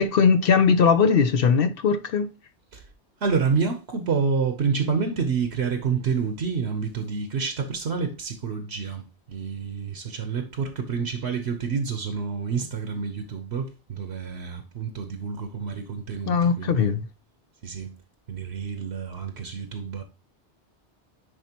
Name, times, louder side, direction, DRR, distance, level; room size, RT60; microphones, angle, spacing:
voice 1, 0.0-2.3 16.3-17.1, left 6 dB, 60° left, 0.8 m, -20 dB
voice 2, 3.2-16.9 17.6-17.9 18.3-20.0, right 5 dB, 70° right, 1.1 m, -28 dB
10.0 x 4.2 x 2.9 m
omnidirectional pair, 1.2 m